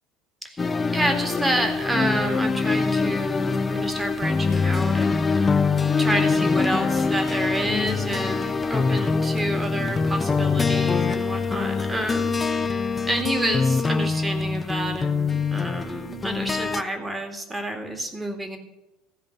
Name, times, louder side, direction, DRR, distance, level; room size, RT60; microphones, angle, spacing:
sound 1, 0.6-16.8, left 4 dB, 20° left, 0.7 m, -24 dB
voice 1, 0.9-5.5 6.0-12.6 13.1-18.6, right 1 dB, 15° right, 5 dB, 2.1 m, -29 dB
14.5 x 5.1 x 8.0 m, 1.0 s
figure-of-eight pair, 65°, 0 cm